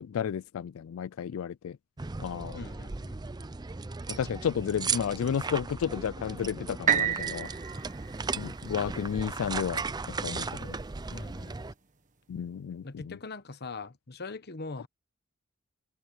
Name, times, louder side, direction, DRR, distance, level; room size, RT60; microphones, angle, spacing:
voice 1, 0.0-1.8 2.2-2.7 4.1-7.5 8.4-9.8 10.2-10.8 12.3-13.2, left 8 dB, 85° left, 0.4 m, -32 dB
sound 1, 2.0-11.7, right 4 dB, 20° right, 0.5 m, -36 dB
voice 2, 2.5-3.2 11.1-11.7 12.8-14.9, left 3 dB, 50° left, 1.2 m, -42 dB
sound 2, 6.9-10.8 11.4-11.5, right 8 dB, 40° right, 1.5 m, -32 dB
head